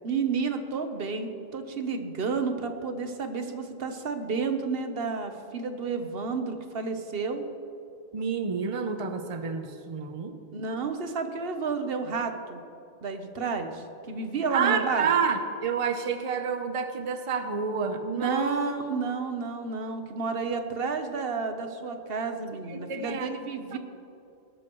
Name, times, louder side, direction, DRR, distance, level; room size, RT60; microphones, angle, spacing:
voice 1, 0.0-7.5 10.5-12.6 13.0-15.1 18.1-23.8, right 4 dB, 65° right, 7 dB, 1.2 m, -31 dB
voice 2, 8.1-10.4 14.5-18.6 22.7-23.3 23.7-23.8, right 6 dB, 35° right, 7 dB, 0.7 m, -29 dB
19.0 x 12.0 x 3.1 m, 2.8 s
omnidirectional pair, 1.1 m